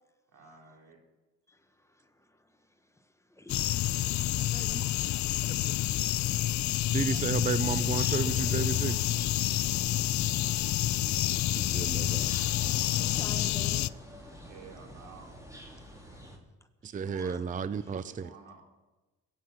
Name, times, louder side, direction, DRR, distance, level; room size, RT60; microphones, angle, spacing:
voice 1, 0.3-1.0 14.5-15.3 16.8-18.6, right 4 dB, 90° right, 3.7 m, -52 dB
voice 2, 1.5-2.4 3.3-3.7 12.5-14.5 15.7-16.4 17.2-17.3, left 1 dB, 10° left, 1.3 m, -51 dB
sound 1, 3.5-13.9, left 14 dB, 70° left, 0.5 m, -28 dB
voice 3, 4.3-4.8 5.6-5.7 6.9-9.0 11.6-12.3 16.8-18.3, right 5 dB, 25° right, 0.6 m, -33 dB
sound 2, 7.6-16.4, equal, 10° right, 3.0 m, -47 dB
21.0 x 9.4 x 6.1 m
cardioid pair, 90°, 30 cm